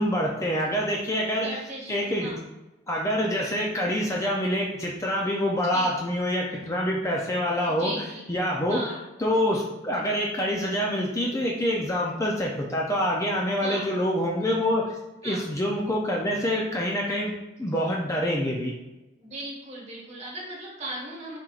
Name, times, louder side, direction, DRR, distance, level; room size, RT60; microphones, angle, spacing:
voice 1, 0.0-1.6 1.9-2.3 2.9-7.9 8.3-8.8 9.2-14.8 15.2-17.3 17.6-18.7, equal, 15° left, -2 dB, 0.4 m, -26 dB
voice 2, 1.2-2.4 5.7-6.0 7.6-8.3 8.7-9.0 13.6-13.8 15.2-15.4 19.2-21.4, right 1 dB, 35° right, -4 dB, 1.3 m, -37 dB
4.4 x 3.8 x 2.4 m, 1.0 s
head